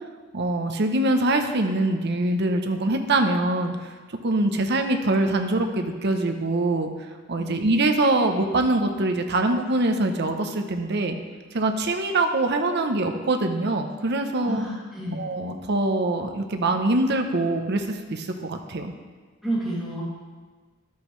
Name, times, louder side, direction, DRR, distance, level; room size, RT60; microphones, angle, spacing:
voice 1, 0.3-3.8 4.2-6.9 7.3-11.2 11.5-14.7 15.1-18.9, right 2 dB, 55° right, 5 dB, 0.8 m, -23 dB
voice 2, 14.5-15.2 19.4-20.0, equal, ahead, -9 dB, 2.5 m, -30 dB
11.5 x 8.3 x 3.2 m, 1.4 s
head